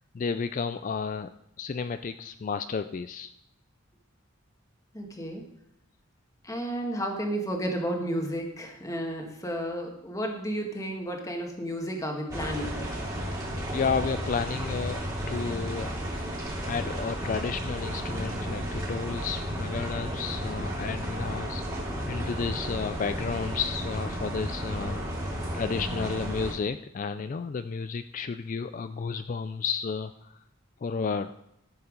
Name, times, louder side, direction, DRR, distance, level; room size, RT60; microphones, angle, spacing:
voice 1, 0.1-1.3 1.6-3.3 13.2-13.4 13.7-15.0 15.3-15.9 16.7-21.6 22.1-25.0 25.5-30.4 30.8-31.3, left 5 dB, 40° left, 10 dB, 0.3 m, -32 dB
voice 2, 4.9-5.4 6.4-12.9 25.3-25.4, right 1 dB, 15° left, 2 dB, 1.6 m, -32 dB
sound 1, 12.3-26.5, equal, 15° right, 2.7 m, -33 dB
14.0 x 7.1 x 5.1 m, 0.80 s
head